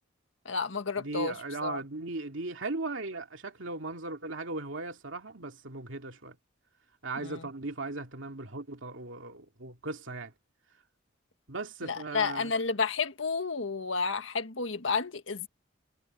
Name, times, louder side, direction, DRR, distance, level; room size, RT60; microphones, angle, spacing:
voice 1, 0.4-1.3 1.6-1.8 7.2-7.5 11.8-15.5, left 4 dB, 80° left, 1.6 m, -31 dB
voice 2, 1.0-6.4 7.0-10.3 11.5-12.5, right 2 dB, 80° right, 2.5 m, -37 dB
head